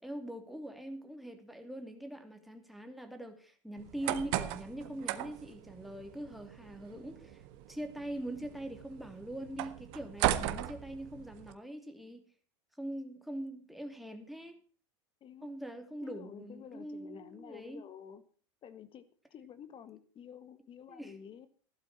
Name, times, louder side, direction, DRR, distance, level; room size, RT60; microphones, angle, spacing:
voice 1, 0.0-12.2 12.8-14.6 15.4-17.9 20.9-21.2, right 1 dB, ahead, 5 dB, 2.9 m, -43 dB
sound 1, 3.8-11.5, right 14 dB, 55° right, 1.5 m, -38 dB
voice 2, 15.2-15.6 16.0-18.2 18.6-19.0 19.3-21.5, left 8 dB, 35° left, 13 dB, 1.7 m, -50 dB
15.5 x 12.0 x 4.3 m, 0.43 s
hypercardioid pair, 105°, 16 cm